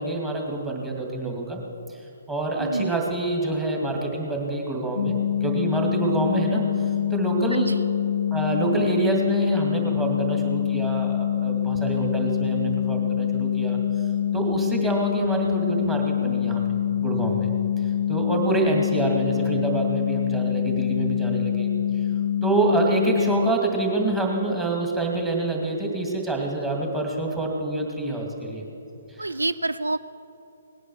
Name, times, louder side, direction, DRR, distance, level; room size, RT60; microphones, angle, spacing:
voice 1, 0.0-1.6 1.9-2.0 2.3-6.6 7.1-7.7 8.3-13.8 14.3-16.6 17.0-17.5 18.1-21.7 22.1-28.6 29.1-29.4, right 3 dB, 10° right, 0 dB, 2.3 m, -26 dB
voice 2, 2.6-2.9 7.5-7.8 29.2-30.0, right 2 dB, 80° right, 14 dB, 0.4 m, -27 dB
sound 1, 5.0-23.5, left 10 dB, 60° left, 0.4 m, -25 dB
18.5 x 9.9 x 6.3 m, 2.8 s
figure-of-eight pair, 130°, 0 cm